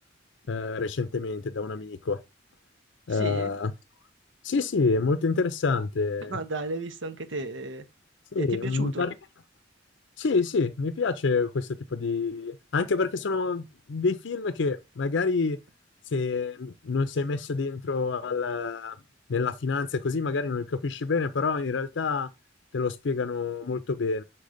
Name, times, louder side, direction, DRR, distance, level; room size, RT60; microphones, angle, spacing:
voice 1, 0.5-2.2 3.1-3.7 4.4-6.4 8.3-9.1 10.2-15.6 16.1-19.0 19.3-22.3 22.7-24.2, left 4 dB, 70° left, 0.5 m, -27 dB
voice 2, 3.1-3.5 6.3-7.8 8.4-9.1, right 2 dB, 80° right, 0.9 m, -34 dB
6.1 x 3.9 x 5.0 m
head